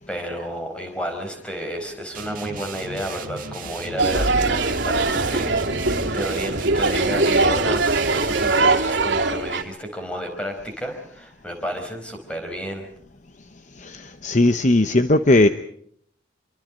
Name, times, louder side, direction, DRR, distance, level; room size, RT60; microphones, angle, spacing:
voice 1, 0.1-12.9, equal, 5° left, 4 dB, 4.8 m, -31 dB
sound 1, 2.1-8.7, right 5 dB, 45° right, 1.9 m, -36 dB
sound 2, 4.0-9.6, right 3 dB, 65° right, 2.7 m, -21 dB
voice 2, 14.2-15.5, left 2 dB, 40° left, 9 dB, 0.8 m, -16 dB
27.0 x 24.0 x 5.2 m, 0.64 s
head